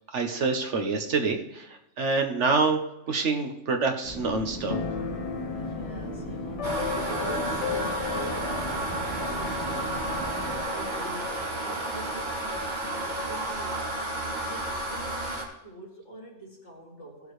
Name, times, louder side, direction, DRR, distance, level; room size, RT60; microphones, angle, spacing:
voice 1, 0.1-2.8 3.1-4.8, right 4 dB, 70° right, 5 dB, 1.4 m, -26 dB
sound 1, 4.0-10.6, right 1 dB, ahead, 3.9 m, -38 dB
Keyboard (musical), 4.7-12.2, left 6 dB, 50° left, 0.4 m, -36 dB
voice 2, 5.5-8.6 9.1-10.0 10.4-14.1 14.4-17.3, right 1 dB, 70° left, -4 dB, 3.2 m, -45 dB
sound 2, 6.6-15.4, right 2 dB, 40° right, 1.9 m, -32 dB
17.0 x 7.2 x 3.2 m, 0.88 s
omnidirectional pair, 1.3 m